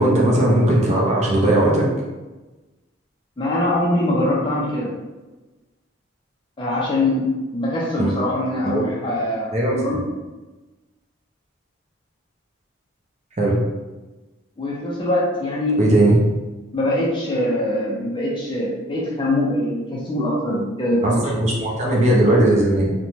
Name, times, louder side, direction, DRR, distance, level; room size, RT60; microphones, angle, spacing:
voice 1, 0.0-1.9 8.0-8.1 8.6-8.9 9.5-10.0 13.4-13.6 15.8-16.2 21.0-22.9, right 1 dB, 35° right, -3 dB, 0.5 m, -18 dB
voice 2, 3.4-5.0 6.6-10.0 14.6-15.8 16.7-21.2, left 1 dB, 25° left, -4 dB, 0.4 m, -23 dB
2.5 x 2.1 x 3.0 m, 1.2 s
head